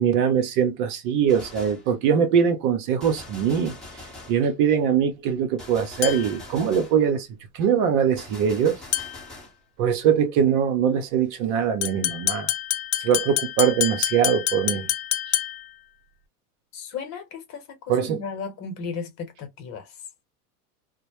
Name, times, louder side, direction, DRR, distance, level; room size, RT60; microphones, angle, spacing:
voice 1, 0.0-3.8 4.3-7.3 7.5-8.8 9.8-12.5 13.0-14.9 17.9-18.2, right 8 dB, 45° right, 0.7 m, -22 dB
Gunshot gunfire, 1.3-1.9 3.0-4.5 5.6-7.0 8.2-9.6, left 2 dB, ahead, 0.9 m, -43 dB
sound 1, 6.0-6.5 8.9-9.3 11.8-15.8, left 14 dB, 60° left, 0.6 m, -27 dB
voice 2, 16.7-20.1, left 5 dB, 35° left, 1.0 m, -35 dB
2.1 x 2.0 x 2.9 m
hypercardioid pair, 105°, 46 cm